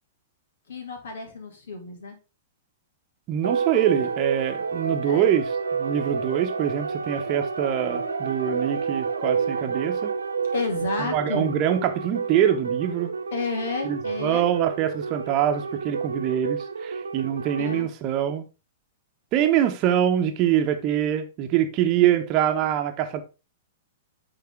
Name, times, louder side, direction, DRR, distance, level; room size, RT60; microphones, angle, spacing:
voice 1, 0.7-2.2 5.0-5.3 10.5-11.5 13.3-14.5 17.6-17.9, left 3 dB, 60° left, 2.2 m, -31 dB
voice 2, 3.3-10.1 11.1-13.1 13.8-18.4 19.3-23.2, right 10 dB, 35° right, 1.1 m, -24 dB
sound 1, 3.4-17.8, right 5 dB, 80° right, 1.1 m, -29 dB
9.5 x 3.8 x 3.6 m
figure-of-eight pair, 105°, 0 cm